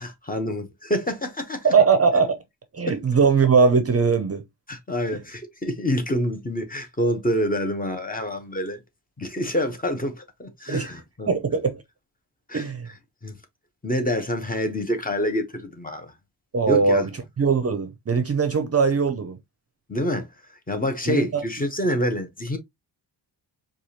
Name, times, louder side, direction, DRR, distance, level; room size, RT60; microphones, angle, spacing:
voice 1, 0.0-1.7 2.9-3.0 4.7-8.8 9.2-11.3 12.5-12.6 13.2-13.4 13.8-16.1 16.7-17.1 19.9-20.3 20.7-22.6, equal, 20° left, 0.8 m, -27 dB
voice 2, 1.6-2.4 2.7-4.4 10.7-11.8 12.5-12.9 16.5-17.1 17.4-19.4 21.1-21.4, right 5 dB, 35° right, 0.6 m, -20 dB
4.8 x 2.4 x 2.7 m
wide cardioid pair, 150°, 43 cm